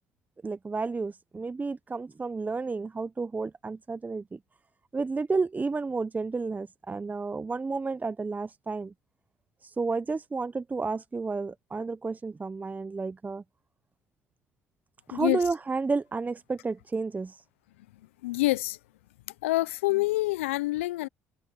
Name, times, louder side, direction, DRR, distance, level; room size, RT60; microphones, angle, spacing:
voice 1, 0.4-4.4 4.9-8.9 9.6-13.4 15.1-17.4, right 4 dB, 25° right, 1.1 m, -31 dB
voice 2, 15.1-15.4 18.2-18.8 19.4-21.1, left 19 dB, 80° left, 0.9 m, -26 dB
hypercardioid pair, 55°, 7 cm